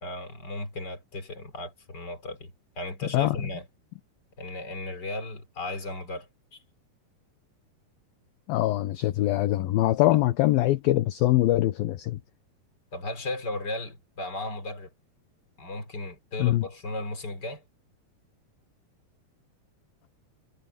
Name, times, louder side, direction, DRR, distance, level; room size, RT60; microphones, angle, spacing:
voice 1, 0.0-3.6 4.4-6.6 12.9-14.9 15.6-17.6, left 2 dB, 25° left, 4.2 m, -36 dB
voice 2, 8.5-12.2 16.4-16.7, left 16 dB, 70° left, 2.5 m, -23 dB
omnidirectional pair, 4.9 m